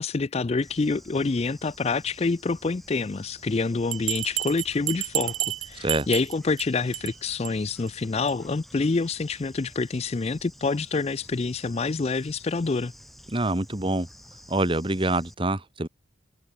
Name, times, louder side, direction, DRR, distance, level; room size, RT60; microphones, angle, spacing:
voice 1, 0.0-12.9, left 3 dB, 30° left, 0.4 m, -27 dB
Bird / Insect, 0.6-15.3, equal, ahead, 2.2 m, -50 dB
Bell, 3.9-6.6 6.9-7.1 7.4-7.5 7.9-8.0 8.3-8.4, right 16 dB, 80° right, 1.0 m, -30 dB
voice 2, 5.8-6.1 13.3-14.1 14.5-15.9, right 2 dB, 25° right, 1.5 m, -26 dB
head